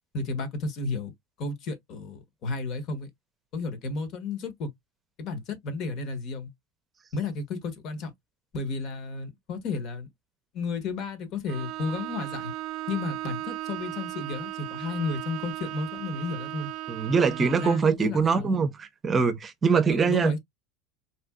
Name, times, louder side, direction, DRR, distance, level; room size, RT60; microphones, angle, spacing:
voice 1, 0.1-1.1 1.4-3.1 3.5-4.7 5.2-6.5 7.1-8.1 8.5-10.1 10.5-12.5 12.9-16.7 17.4-18.6 19.9-20.4, left 3 dB, 50° left, 1.3 m, -32 dB
Bowed string instrument, 11.5-18.0, right 16 dB, 65° right, 0.5 m, -36 dB
voice 2, 16.9-20.3, right 5 dB, 25° right, 0.7 m, -23 dB
4.2 x 2.5 x 2.3 m
supercardioid pair, 110°, 0 cm